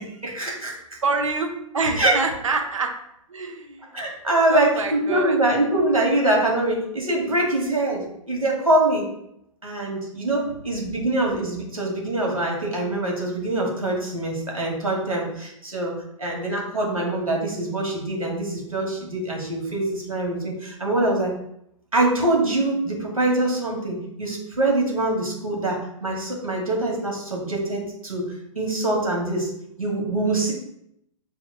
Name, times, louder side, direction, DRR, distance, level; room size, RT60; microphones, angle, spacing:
voice 1, 0.0-1.0 1.9-2.2 3.9-9.1 9.6-21.3 21.9-29.5 29.8-30.5, right 2 dB, 85° right, -2 dB, 1.4 m, -24 dB
voice 2, 1.0-2.9 3.3-3.8 4.5-5.4, right 3 dB, 70° right, 4 dB, 0.8 m, -26 dB
6.0 x 3.5 x 2.3 m, 0.76 s
figure-of-eight pair, 110°, 17 cm